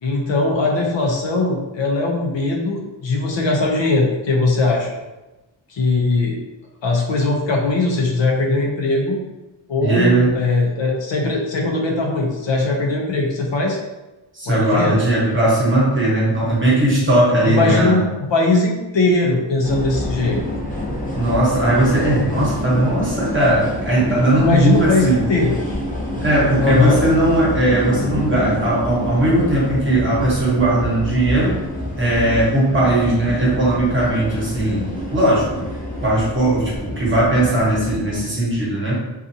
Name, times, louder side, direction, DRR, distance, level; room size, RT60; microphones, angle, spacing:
voice 1, 0.0-5.0 5.7-6.4 6.8-9.2 9.7-13.8 14.5-15.0 17.5-18.0 18.3-20.4 24.4-25.6 26.6-27.0, left 3 dB, 65° left, 0 dB, 0.6 m, -20 dB
voice 2, 9.8-10.3 14.3-18.0 21.1-25.2 26.2-31.6 32.0-35.6 36.0-39.0, right 1 dB, 25° right, -6 dB, 0.9 m, -18 dB
sound 1, 19.6-38.2, left 1 dB, 15° left, 0.6 m, -27 dB
2.6 x 2.4 x 2.6 m, 1.0 s
wide cardioid pair, 110°, 48 cm